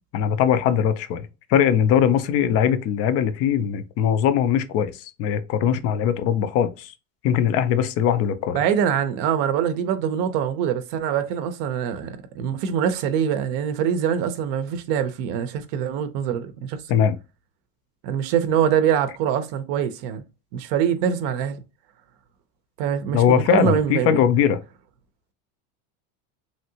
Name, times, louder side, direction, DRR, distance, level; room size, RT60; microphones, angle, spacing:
voice 1, 0.1-6.9 7.2-8.6 16.9-17.2 23.1-24.6, left 9 dB, 35° left, 0.4 m, -21 dB
voice 2, 8.5-16.8 18.0-20.2 20.5-21.6 22.8-24.2, right 8 dB, 55° right, 0.6 m, -24 dB
3.1 x 2.7 x 2.7 m
supercardioid pair, 120°, 45 cm